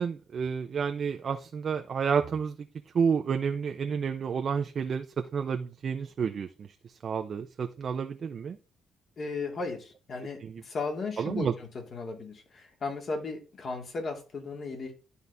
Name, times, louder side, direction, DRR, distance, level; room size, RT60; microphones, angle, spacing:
voice 1, 0.0-2.5 2.9-5.1 5.3-6.7 7.0-8.6 10.4-10.6 11.2-11.5, right 6 dB, 50° right, 6 dB, 0.6 m, -30 dB
voice 2, 9.2-14.9, left 4 dB, 50° left, 3 dB, 2.2 m, -36 dB
11.0 x 4.1 x 3.5 m, 0.33 s
cardioid pair, 90°, 0 cm